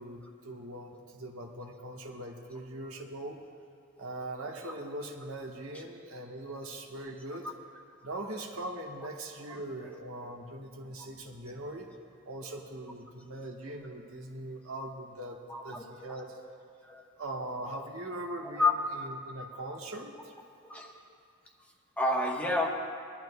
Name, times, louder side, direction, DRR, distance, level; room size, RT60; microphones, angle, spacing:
voice 1, 0.0-3.4 4.0-7.5 8.0-11.9 12.2-16.4 17.2-20.3, right 1 dB, 90° right, 0 dB, 1.3 m, -41 dB
voice 2, 15.5-16.2 16.8-17.0 18.5-18.7 20.6-21.0 22.0-22.7, left 2 dB, 5° left, -1 dB, 1.1 m, -30 dB
22.5 x 12.0 x 2.3 m, 2.3 s
head